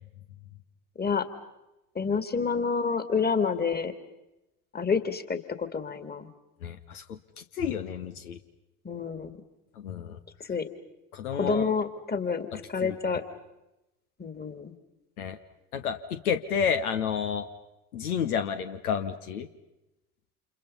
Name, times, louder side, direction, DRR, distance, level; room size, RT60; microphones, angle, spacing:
voice 1, 1.0-1.3 2.0-3.9 4.7-6.3 8.8-9.3 10.4-10.7 11.3-13.2 14.2-14.7, left 5 dB, 20° left, 10 dB, 2.3 m, -28 dB
voice 2, 6.6-8.4 9.8-10.2 11.1-11.7 12.5-13.0 15.2-15.4 15.7-17.5 17.9-19.5, left 7 dB, 80° left, 8 dB, 1.2 m, -31 dB
29.5 x 28.0 x 5.5 m, 0.96 s
figure-of-eight pair, 60°, 44 cm